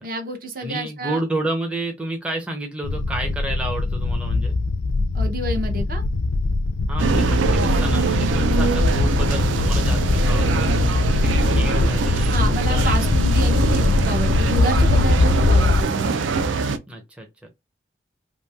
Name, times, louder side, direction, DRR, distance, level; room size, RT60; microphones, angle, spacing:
voice 1, 0.0-1.2 5.1-6.0 12.3-16.2, right 2 dB, 50° right, 0.6 m, -29 dB
voice 2, 0.6-4.5 6.9-10.7 11.1-13.1 16.9-17.5, right 1 dB, 5° right, 0.5 m, -30 dB
sound 1, 2.8-15.8, left 3 dB, 65° left, 0.3 m, -21 dB
sound 2, 7.0-16.8, right 4 dB, 90° right, 0.4 m, -23 dB
3.0 x 2.6 x 2.2 m
head